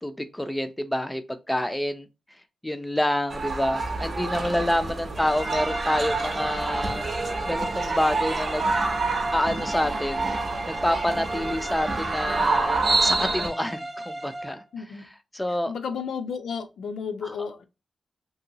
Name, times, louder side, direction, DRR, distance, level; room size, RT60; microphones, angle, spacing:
voice 1, 0.0-2.1 2.6-7.1 7.5-8.6 9.3-10.3 10.7-14.6 15.3-15.7, left 1 dB, 5° left, 0.3 m, -27 dB
sound 1, 3.3-13.5, right 3 dB, 55° right, 0.6 m, -28 dB
sound 2, 5.1-14.6, right 1 dB, 25° right, 0.8 m, -35 dB
voice 2, 14.7-15.1 15.5-17.6, left 6 dB, 80° left, 0.5 m, -33 dB
2.7 x 2.6 x 2.7 m
wide cardioid pair, 120°, 0 cm